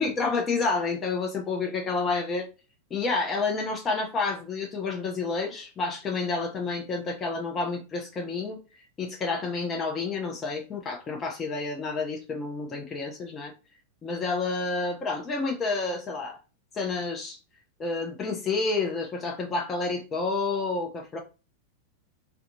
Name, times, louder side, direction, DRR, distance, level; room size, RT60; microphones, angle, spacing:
voice 1, 0.0-2.5 2.9-8.6 9.0-13.5 14.0-16.4 16.7-17.4 17.8-21.2, left 3 dB, 25° left, 1 dB, 0.5 m, -29 dB
2.4 x 2.3 x 2.7 m, 0.32 s
figure-of-eight pair, 90°, 0 cm